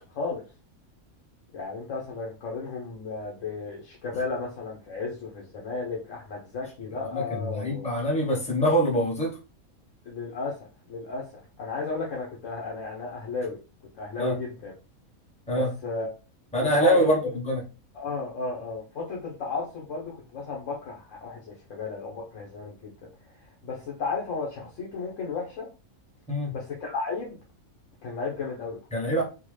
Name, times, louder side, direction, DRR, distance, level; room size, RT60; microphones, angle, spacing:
voice 1, 1.5-7.9 10.0-10.6 10.9-11.3 11.6-13.6 13.9-14.7 15.5-16.1 16.6-17.2 17.9-22.9 23.4-25.7 26.5-27.4 28.0-28.8, left 4 dB, 65° left, -2 dB, 1.1 m, -34 dB
voice 2, 7.1-9.4 14.2-14.3 15.5-15.7 16.5-17.2 17.4-17.6 26.3-26.5 28.9-29.2, equal, 5° left, -2 dB, 0.8 m, -24 dB
3.6 x 2.2 x 3.1 m, 0.32 s
omnidirectional pair, 1.5 m